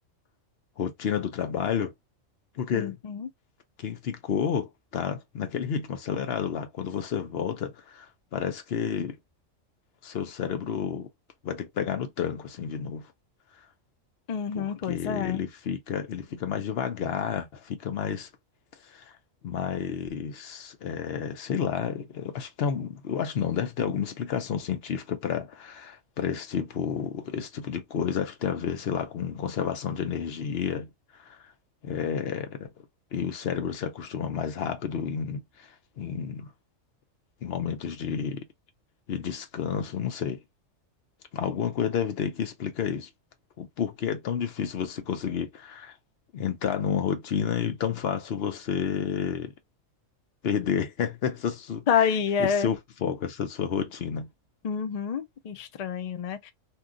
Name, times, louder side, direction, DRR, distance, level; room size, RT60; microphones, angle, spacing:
voice 1, 0.8-1.9 2.6-3.0 3.8-9.2 10.0-11.1 11.4-13.1 14.5-18.3 18.9-19.1 19.4-30.9 31.2-31.4 31.8-32.7 33.1-36.5 37.4-38.4 39.1-40.4 41.3-43.1 43.6-45.9 46.3-49.5 50.4-52.1 52.4-54.3, left 7 dB, 60° left, 0.8 m, -30 dB
voice 2, 2.7-3.3 14.3-15.4 51.9-52.7 54.6-56.5, left 7 dB, 75° left, 0.3 m, -28 dB
2.8 x 2.3 x 3.7 m
omnidirectional pair, 1.4 m